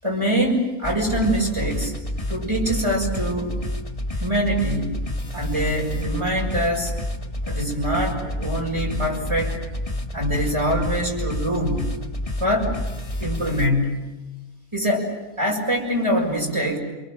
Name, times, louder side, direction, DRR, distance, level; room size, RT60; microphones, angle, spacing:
voice 1, 0.0-1.9 2.3-3.6 4.2-6.9 7.4-9.6 10.1-12.0 12.4-12.8 13.2-14.2 14.7-15.1 15.4-16.8, equal, 20° right, -1 dB, 6.4 m, -24 dB
sound 1, 0.8-13.7, left 1 dB, 25° left, 1.8 m, -29 dB
29.0 x 23.5 x 7.7 m, 1.1 s
omnidirectional pair, 1.5 m